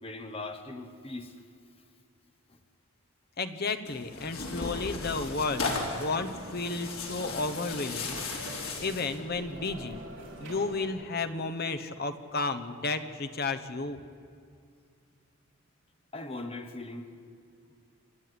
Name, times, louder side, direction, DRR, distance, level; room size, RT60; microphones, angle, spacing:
voice 1, 0.0-1.3 2.5-2.6 16.1-17.1, left 2 dB, 25° left, 6 dB, 1.3 m, -40 dB
voice 2, 3.4-8.2 8.8-10.0 10.4-14.0, left 3 dB, 45° left, 9 dB, 1.1 m, -32 dB
Tearing, 3.8-9.2, left 3 dB, 85° left, 3.5 m, -36 dB
sound 1, 5.1-10.9, right 1 dB, 60° right, 4.1 m, -45 dB
28.0 x 9.9 x 9.8 m, 2.3 s
head